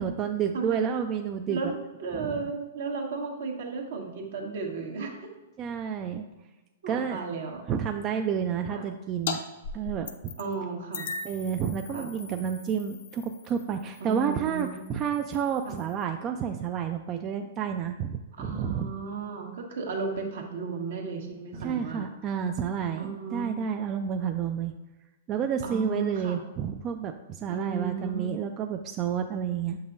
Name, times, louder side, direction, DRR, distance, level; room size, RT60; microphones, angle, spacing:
voice 1, 0.0-1.6 2.1-2.5 5.6-6.3 6.9-7.2 7.7-9.5 9.7-10.3 11.2-18.9 21.5-24.7 25.3-29.8, right 7 dB, 30° right, 5 dB, 0.3 m, -30 dB
voice 2, 0.5-0.9 1.5-5.2 6.8-7.6 8.7-8.9 10.4-11.1 11.9-12.1 14.0-14.8 15.6-15.8 18.3-22.1 23.0-23.5 25.6-26.4 27.5-28.4, right 4 dB, 70° right, 1 dB, 1.3 m, -34 dB
sound 1, 9.3-9.4 9.6-10.5 10.9-16.0, left 5 dB, 65° left, 0.6 m, -40 dB
6.9 x 5.5 x 2.5 m, 1.1 s
hypercardioid pair, 130°, 0 cm